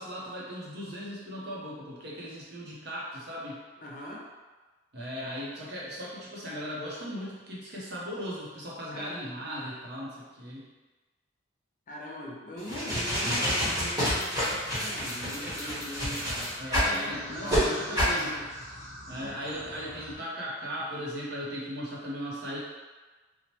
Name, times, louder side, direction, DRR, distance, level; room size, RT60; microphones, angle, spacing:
voice 1, 0.0-3.6 4.9-10.7 16.6-18.3 19.1-22.6, equal, 50° right, -6 dB, 0.7 m, -37 dB
voice 2, 3.8-4.3 8.9-9.3 11.9-14.3 14.7-18.5, equal, 40° left, -4 dB, 0.5 m, -41 dB
cartoon kungfu, 12.6-16.9 17.5-17.6 17.9-18.2, equal, 20° right, 1.0 m, -28 dB
sound 1, 13.8-20.1, equal, 70° right, 1.1 m, -44 dB
3.0 x 2.1 x 2.8 m, 1.3 s
head